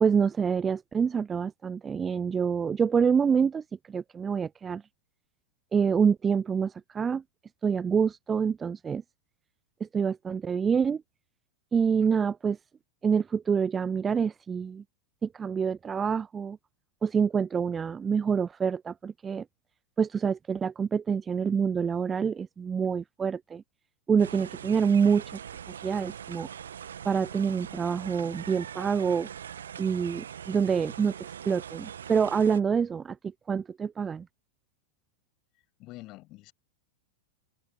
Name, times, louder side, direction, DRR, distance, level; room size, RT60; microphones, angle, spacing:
voice 1, 0.0-4.8 5.7-7.2 7.6-9.0 9.8-11.0 11.7-12.6 13.0-14.8 15.2-16.6 17.0-19.4 20.0-23.6 24.1-25.4 25.7-26.5 27.0-29.3 29.8-33.2 33.5-34.3, right 6 dB, 20° right, 0.3 m, -26 dB
sound 1, 24.2-32.6, right 8 dB, 65° right, 2.0 m, -42 dB
voice 2, 35.8-36.5, left 20 dB, 40° left, 6.8 m, -46 dB
open air
figure-of-eight pair, 90°, 0 cm